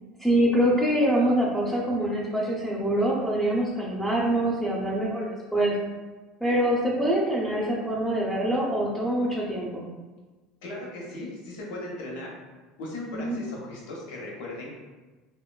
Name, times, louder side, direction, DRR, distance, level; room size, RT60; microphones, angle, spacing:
voice 1, 0.2-5.7 6.4-9.8 13.1-13.4, right 1 dB, ahead, -8 dB, 0.6 m, -25 dB
voice 2, 10.6-12.3 12.8-14.7, left 1 dB, 80° left, -3 dB, 0.8 m, -37 dB
2.9 x 2.2 x 2.2 m, 1.3 s
supercardioid pair, 95°, 0 cm